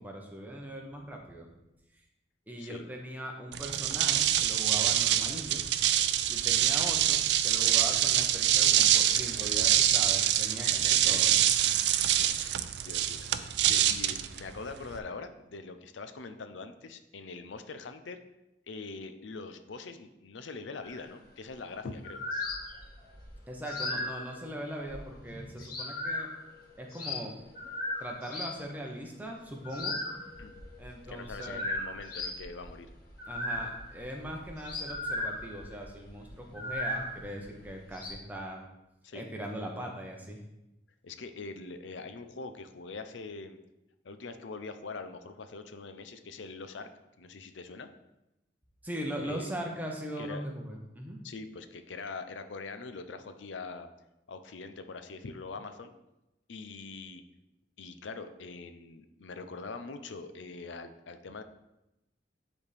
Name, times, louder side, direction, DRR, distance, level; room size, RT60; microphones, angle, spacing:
voice 1, 0.0-1.5 2.5-5.7 6.3-11.4 23.5-26.3 26.8-27.4 28.0-30.0 30.8-31.6 33.3-38.6 39.1-40.4 48.8-51.2, equal, 10° right, 0 dB, 0.9 m, -40 dB
sound 1, 3.5-15.0, right 11 dB, 65° right, 0.4 m, -25 dB
voice 2, 10.6-11.2 12.0-18.2 18.7-22.2 25.6-25.7 30.4-30.6 31.1-32.9 39.0-39.3 41.0-43.6 44.0-46.9 47.2-47.9 49.2-49.5 50.2-50.4 51.2-53.9 54.3-55.9 56.5-57.2 57.8-61.4, left 4 dB, 85° left, 9 dB, 0.5 m, -43 dB
sound 2, 20.8-21.1 21.9-28.5 29.6-38.1, left 1 dB, 55° left, 1.6 m, -37 dB
9.7 x 4.2 x 3.4 m, 0.93 s
head